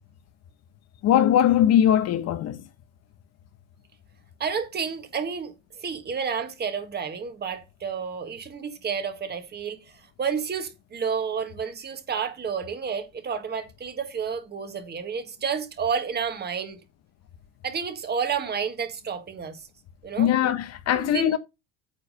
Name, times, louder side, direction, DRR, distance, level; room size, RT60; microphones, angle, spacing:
voice 1, 1.0-2.6 20.2-21.4, left 10 dB, 45° left, 0.9 m, -20 dB
voice 2, 4.4-16.8 17.6-19.7 20.0-20.3 20.9-21.4, right 6 dB, 30° right, 1.8 m, -30 dB
9.0 x 4.7 x 5.3 m
supercardioid pair, 115°, 34 cm